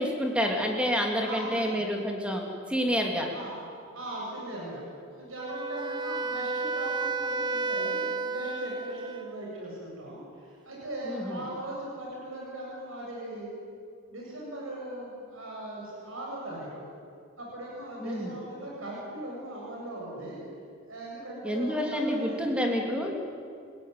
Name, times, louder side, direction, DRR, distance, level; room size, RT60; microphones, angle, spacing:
voice 1, 0.0-2.4 2.7-3.3 11.1-11.4 18.0-18.3 21.4-23.1, equal, 5° right, 1 dB, 3.3 m, -28 dB
voice 2, 1.2-1.8 3.3-3.6 3.9-13.5 14.1-16.9 17.4-20.4 20.9-22.6, right 1 dB, 80° right, -4 dB, 7.7 m, -39 dB
Wind instrument woodwind instrument, 5.4-9.4, right 3 dB, 20° right, 0.9 m, -32 dB
28.5 x 16.5 x 9.6 m, 2.3 s
head